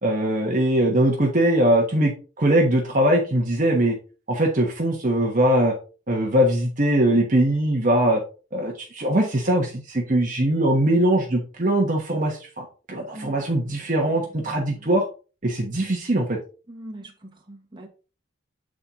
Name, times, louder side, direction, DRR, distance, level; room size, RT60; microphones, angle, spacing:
voice 1, 0.0-3.9 4.3-5.7 6.1-8.2 8.5-15.0 15.4-16.4, right 1 dB, 40° right, 1.1 m, -21 dB
voice 2, 13.1-14.9 16.7-17.9, right 1 dB, 25° right, 1.4 m, -43 dB
7.7 x 4.3 x 3.7 m
head